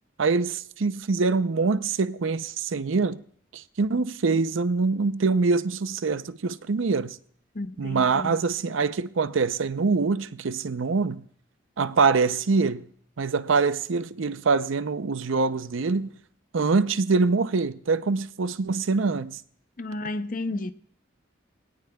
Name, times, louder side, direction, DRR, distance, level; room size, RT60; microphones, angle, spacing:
voice 1, 0.2-3.2 3.5-7.2 7.8-11.3 11.8-12.9 13.2-16.1 16.5-19.4, right 4 dB, 85° right, 0.6 m, -24 dB
voice 2, 7.5-8.3 19.8-20.7, left 2 dB, 45° left, 0.6 m, -32 dB
21.5 x 17.5 x 2.3 m
head